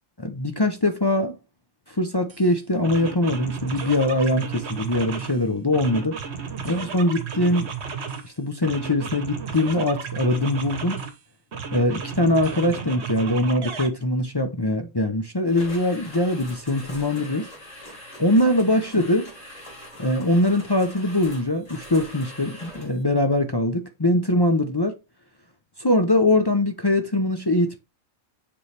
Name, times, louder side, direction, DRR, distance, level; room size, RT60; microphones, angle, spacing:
voice 1, 0.2-1.4 1.9-6.2 6.6-7.7 8.2-11.0 11.7-17.5 18.2-19.3 20.0-24.9 25.8-27.8, left 1 dB, 30° left, 0.4 m, -22 dB
sound 1, 2.3-2.5 2.8-5.4 5.7-8.3 8.6-11.2 11.5-13.9, right 6 dB, 50° right, 1.2 m, -33 dB
sound 2, 15.5-23.0, left 1 dB, 60° left, 4.4 m, -42 dB
6.9 x 5.4 x 3.3 m
omnidirectional pair, 1.5 m